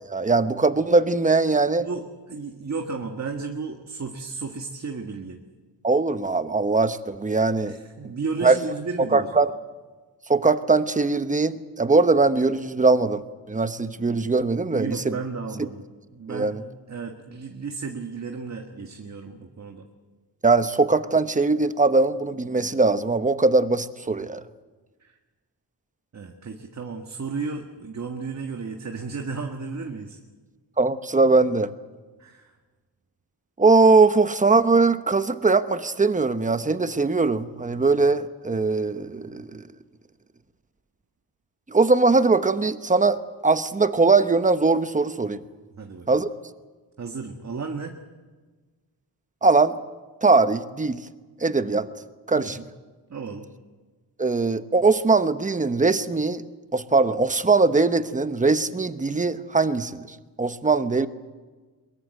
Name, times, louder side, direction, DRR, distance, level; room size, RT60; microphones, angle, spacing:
voice 1, 0.1-1.9 5.8-7.8 8.4-8.6 9.1-9.5 10.3-13.2 13.5-15.1 16.3-16.6 20.4-24.4 30.8-31.7 33.6-39.6 41.7-43.2 43.4-45.4 46.1-46.3 49.4-49.8 50.2-51.0 51.4-51.9 52.3-52.6 54.2-56.4 56.7-60.1 60.4-61.1, right 3 dB, 20° right, 11 dB, 1.0 m, -21 dB
voice 2, 1.8-5.4 7.6-9.3 14.7-15.9 16.1-16.5 16.9-19.8 25.0-25.1 26.1-30.2 32.2-32.5 45.7-46.2 47.0-47.9 52.4-52.7 53.1-53.5, right 4 dB, 40° right, 3 dB, 1.8 m, -33 dB
23.0 x 22.5 x 7.8 m, 1.3 s
wide cardioid pair, 140°, 41 cm